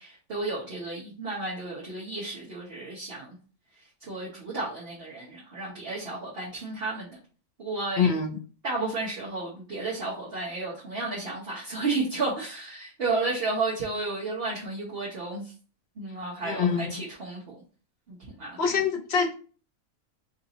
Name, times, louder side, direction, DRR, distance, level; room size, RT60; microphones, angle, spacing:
voice 1, 0.0-3.4 4.1-7.2 7.6-8.2 8.6-15.5 16.0-17.5 18.1-18.6, right 3 dB, 45° right, -6 dB, 1.2 m, -32 dB
voice 2, 8.0-8.4 16.4-17.0 18.6-19.3, left 6 dB, 50° left, 1 dB, 1.1 m, -25 dB
3.9 x 2.6 x 4.0 m, 0.39 s
omnidirectional pair, 1.5 m